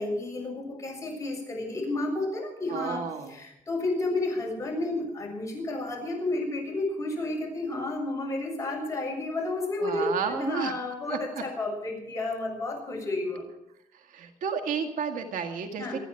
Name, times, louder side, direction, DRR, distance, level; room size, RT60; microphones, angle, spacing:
voice 1, 0.0-13.5 15.8-16.0, left 2 dB, 25° left, 0 dB, 7.0 m, -31 dB
voice 2, 2.7-3.4 9.8-10.7 11.1-11.4 13.9-16.0, right 6 dB, 85° right, 5 dB, 1.9 m, -32 dB
27.0 x 10.5 x 4.6 m, 0.81 s
cardioid pair, 105°, 14 cm